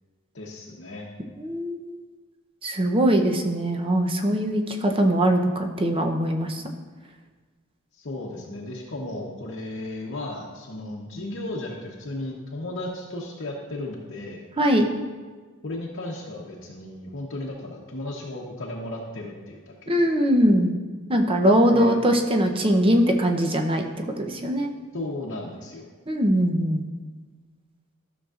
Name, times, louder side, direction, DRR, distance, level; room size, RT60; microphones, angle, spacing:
voice 1, 0.3-1.1 7.9-14.5 15.6-20.1 21.7-22.0 24.9-25.9, left 1 dB, 55° left, -4 dB, 0.9 m, -35 dB
voice 2, 1.4-2.0 2.6-6.7 14.6-14.9 19.9-20.7 21.1-23.8 24.2-24.7 26.1-26.8, equal, 25° right, 3 dB, 0.7 m, -21 dB
13.0 x 6.4 x 2.5 m, 1.4 s
head